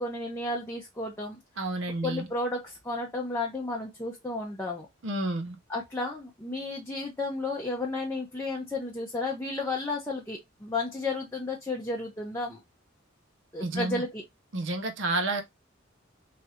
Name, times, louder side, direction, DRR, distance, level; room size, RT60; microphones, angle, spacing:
voice 1, 0.0-1.4 2.0-4.9 5.7-12.6 13.5-14.2, left 2 dB, 15° left, 0.6 m, -33 dB
voice 2, 1.6-2.3 5.0-5.6 13.6-14.0 14.5-15.4, right 2 dB, 65° right, 0.7 m, -30 dB
3.2 x 2.5 x 2.7 m
head